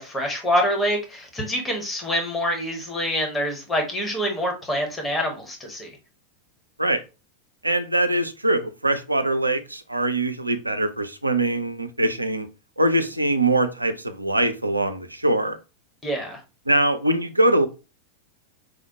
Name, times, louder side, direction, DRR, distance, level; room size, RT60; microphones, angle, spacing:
voice 1, 0.0-5.9 16.0-16.4, equal, 15° left, 0.9 m, -26 dB
voice 2, 7.6-12.5 12.8-15.6 16.7-17.7, right 1 dB, 85° right, 0.4 m, -22 dB
4.9 x 2.1 x 2.7 m
figure-of-eight pair, 90°, 0 cm